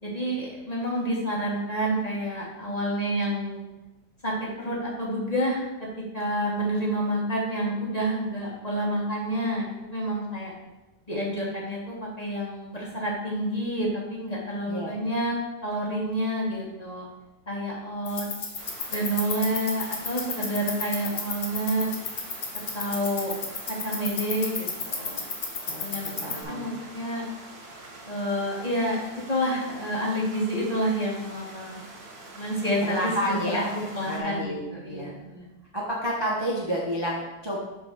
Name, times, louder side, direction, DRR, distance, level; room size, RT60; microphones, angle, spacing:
voice 1, 0.0-3.6 4.2-5.6 6.1-10.5 11.1-15.3 15.6-17.1 17.5-18.3 18.9-21.9 22.7-23.4 23.8-25.2 25.8-26.2 26.5-27.3 28.1-29.0 29.3-31.8 32.3-33.6 34.0-35.5, equal, 20° left, -4 dB, 1.7 m, -29 dB
sound 1, 18.1-26.4, left 4 dB, 50° left, 1.6 m, -34 dB
sound 2, 18.6-34.2, right 2 dB, 55° right, 1.8 m, -45 dB
voice 2, 25.7-26.7 32.8-35.1 35.7-37.6, equal, 15° right, -4 dB, 0.9 m, -30 dB
7.6 x 3.9 x 6.2 m, 1.0 s
omnidirectional pair, 2.0 m